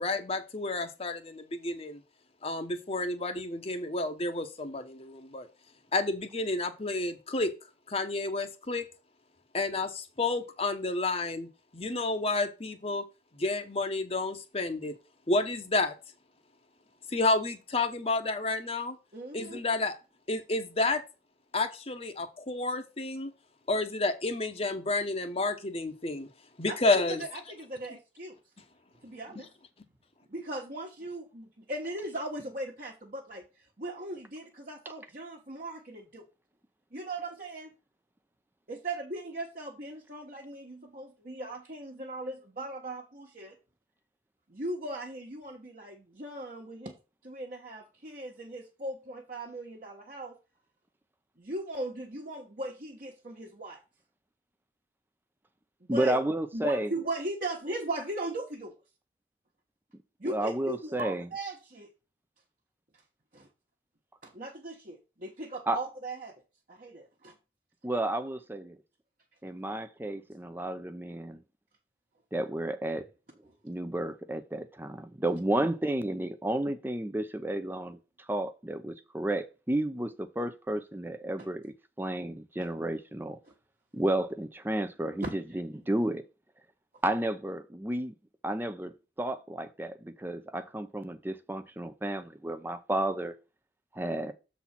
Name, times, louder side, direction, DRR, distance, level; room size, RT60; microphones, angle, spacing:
voice 1, 0.0-2.0 2.4-5.5 5.9-7.5 7.9-8.8 9.5-11.5 11.7-13.0 13.4-14.9 15.3-15.9 17.1-19.0 19.3-19.9 20.3-21.0 21.5-23.3 23.7-26.3 26.6-27.2, left 2 dB, 35° left, 1.0 m, -30 dB
voice 2, 19.1-19.6 26.7-28.4 29.0-29.5 30.3-36.2 36.9-37.7 38.7-43.6 44.5-46.9 47.2-50.3 51.4-53.8 55.8-56.2 56.5-58.7 60.2-61.9 63.3-63.5 64.2-66.3 66.7-67.3 81.4-81.5 83.5-83.6 85.2-85.6, right 1 dB, 50° right, 1.3 m, -38 dB
voice 3, 55.9-56.9 60.2-61.3 65.7-65.8 67.8-68.8 69.4-71.4 72.3-73.1 73.6-78.0 78.3-83.4 83.9-86.2 87.0-88.1 88.4-88.9 89.2-93.3 93.9-94.3, right 1 dB, 10° right, 0.6 m, -32 dB
7.0 x 4.2 x 5.9 m
head